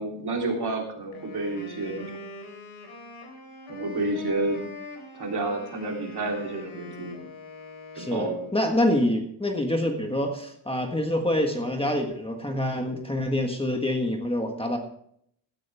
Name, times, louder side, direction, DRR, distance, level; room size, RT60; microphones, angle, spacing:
voice 1, 0.0-2.2 3.7-4.6 5.1-7.2 7.9-8.4, right 2 dB, 55° right, 0 dB, 3.4 m, -30 dB
Wind instrument woodwind instrument, 1.1-8.7, left 2 dB, 85° left, 4.0 m, -43 dB
voice 2, 7.9-14.8, left 1 dB, 10° left, 3 dB, 1.5 m, -26 dB
16.0 x 11.5 x 3.5 m, 0.67 s
wide cardioid pair, 150°, 48 cm